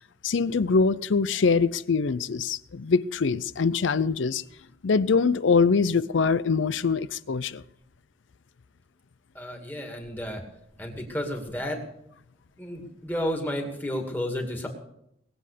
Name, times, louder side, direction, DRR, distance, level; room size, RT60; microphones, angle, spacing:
voice 1, 0.2-4.4 4.8-7.6, left 5 dB, 65° left, 0.5 m, -23 dB
voice 2, 9.3-10.4 10.8-11.8 12.6-14.7, equal, 10° left, 2.3 m, -32 dB
20.0 x 7.7 x 6.7 m
head